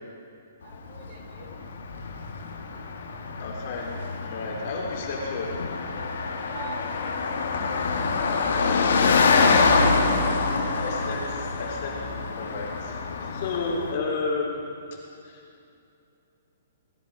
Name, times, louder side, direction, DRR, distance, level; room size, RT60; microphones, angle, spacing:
voice 1, 0.6-1.5 6.5-7.4 7.8-7.9, right 4 dB, 50° right, 1 dB, 3.1 m, -43 dB
Car passing by, 0.7-13.9, left 4 dB, 75° left, 1.6 m, -25 dB
voice 2, 3.4-3.9 4.2-5.5 10.6-12.1 12.4-14.6 15.2-15.4, left 3 dB, 50° left, -2 dB, 3.6 m, -32 dB
19.0 x 10.5 x 4.8 m, 2.6 s
hypercardioid pair, 135°, 0 cm